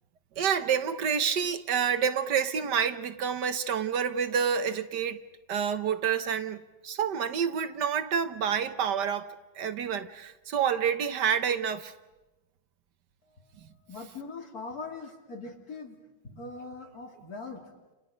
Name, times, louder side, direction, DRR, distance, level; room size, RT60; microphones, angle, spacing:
voice 1, 0.4-5.2 5.5-11.9 13.6-13.7, right 7 dB, 70° right, 1.6 m, -28 dB
voice 2, 13.9-16.0 16.4-17.6, left 3 dB, 55° left, 3.5 m, -41 dB
30.0 x 29.0 x 5.1 m
omnidirectional pair, 1.9 m